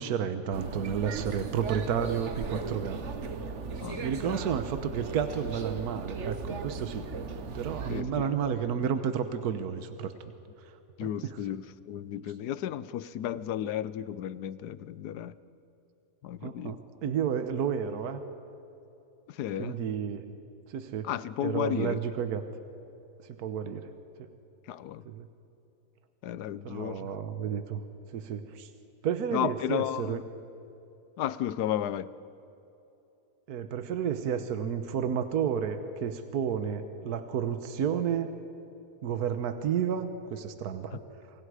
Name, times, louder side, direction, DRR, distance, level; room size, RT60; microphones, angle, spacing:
voice 1, 0.0-3.3 4.0-7.1 7.5-10.1 11.0-11.1 16.4-18.2 19.6-20.3 20.7-21.1 21.4-22.4 23.4-23.9 25.1-25.3 26.6-27.8 28.1-28.7 29.0-30.2 33.5-38.3 39.0-41.0, right 8 dB, 75° right, 9 dB, 1.5 m, -31 dB
sound 1, 0.5-8.0, right 4 dB, 50° right, 1.4 m, -37 dB
voice 2, 3.8-4.4 7.9-8.3 11.0-15.3 16.2-16.8 19.3-19.8 21.0-22.0 24.7-25.0 26.2-27.1 29.3-30.2 31.2-32.1, left 11 dB, 85° left, 16 dB, 1.3 m, -33 dB
28.5 x 24.5 x 4.9 m, 2.9 s
omnidirectional pair, 1.7 m